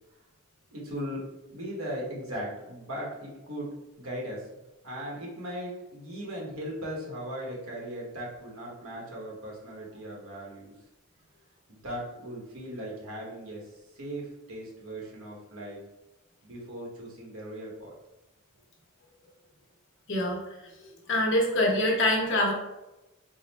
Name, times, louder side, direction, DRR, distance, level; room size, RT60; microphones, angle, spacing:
voice 1, 0.7-1.2 1.5-4.5 4.8-10.7 11.7-15.8 16.4-17.9, equal, 85° right, -3 dB, 1.3 m, -38 dB
voice 2, 20.1-20.4 20.8-22.5, left 1 dB, 60° left, -2 dB, 1.1 m, -25 dB
4.0 x 2.1 x 4.1 m, 0.98 s
head